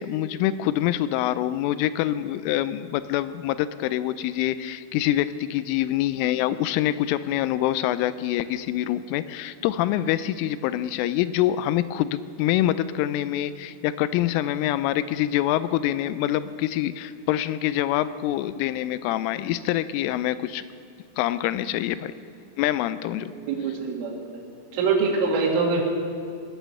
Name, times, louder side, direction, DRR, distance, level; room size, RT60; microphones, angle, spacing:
voice 1, 0.0-20.6 21.2-22.1 22.6-23.3, left 13 dB, 85° left, 14 dB, 3.1 m, -25 dB
voice 2, 23.3-24.2 24.7-25.8, right 4 dB, 80° right, 0 dB, 4.4 m, -24 dB
18.5 x 10.5 x 6.5 m, 2.3 s
omnidirectional pair, 5.7 m